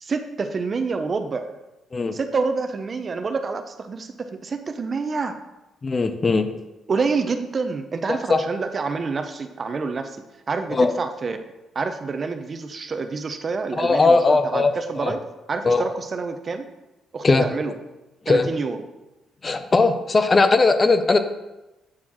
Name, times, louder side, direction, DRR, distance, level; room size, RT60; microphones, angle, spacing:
voice 1, 0.0-1.5 2.1-5.4 6.9-10.2 10.5-11.4 11.7-15.2 15.5-16.7 17.1-17.7 18.3-18.8, right 4 dB, 40° right, 7 dB, 0.5 m, -27 dB
voice 2, 5.8-6.5 8.1-8.4 10.7-10.9 13.8-15.1 15.6-15.9 17.2-17.5 18.3-18.5 19.4-21.2, left 3 dB, 30° left, 9 dB, 0.5 m, -19 dB
8.6 x 4.2 x 2.9 m, 1.0 s
cardioid pair, 90°, 0 cm